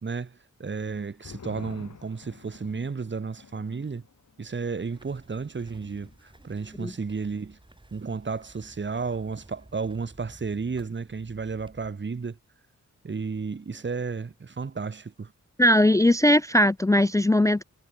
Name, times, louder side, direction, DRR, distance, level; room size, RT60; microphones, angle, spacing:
voice 1, 0.0-4.0 4.4-6.1 6.4-7.6 7.9-12.4 13.0-15.3, right 5 dB, 40° right, 1.4 m, -33 dB
sound 1, 0.6-7.6 7.9-8.0 8.4-8.8, left 6 dB, 65° left, 7.3 m, -51 dB
sound 2, 4.8-11.9, right 1 dB, 15° right, 7.1 m, -53 dB
voice 2, 15.6-17.6, left 1 dB, 10° left, 0.3 m, -19 dB
wide cardioid pair, 95°, 31 cm